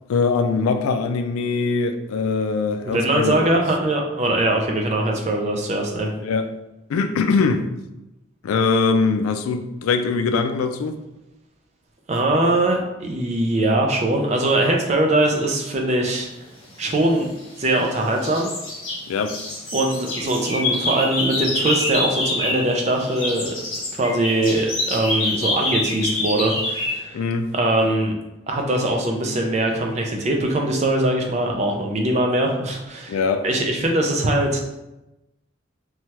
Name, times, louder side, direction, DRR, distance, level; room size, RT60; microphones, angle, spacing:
voice 1, 0.1-3.4 6.2-6.5 6.9-7.6 8.4-10.9 19.1-19.4 27.1-27.5 33.1-33.4, left 4 dB, 85° left, 8 dB, 0.3 m, -22 dB
voice 2, 2.8-6.1 12.1-16.3 16.8-17.3 17.6-18.5 19.7-23.7 24.0-27.2 27.5-28.1 28.5-33.2 33.4-34.6, right 1 dB, 30° right, 1 dB, 0.4 m, -21 dB
sound 1, 17.1-17.9 18.2-22.7 23.0-27.0, left 2 dB, 70° left, 1.1 m, -26 dB
3.1 x 2.2 x 2.8 m, 0.94 s
head